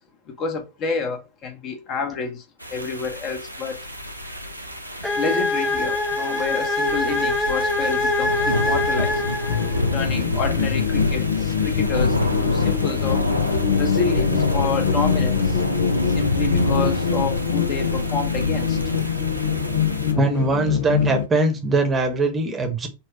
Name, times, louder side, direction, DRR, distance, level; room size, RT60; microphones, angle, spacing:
voice 1, 0.4-2.4 2.7-3.8 5.2-9.2 9.9-13.2 13.8-15.6 16.1-18.8, left 4 dB, 35° left, 1.0 m, -29 dB
sound 1, 2.6-20.1, left 1 dB, 90° right, 0.6 m, -26 dB
sound 2, 5.0-9.9, left 2 dB, 5° left, 0.8 m, -24 dB
sound 3, 9.5-21.3, left 7 dB, 60° left, 0.5 m, -24 dB
voice 2, 20.1-22.9, right 2 dB, 20° right, 1.0 m, -21 dB
4.3 x 2.3 x 4.4 m
figure-of-eight pair, 90°, 0 cm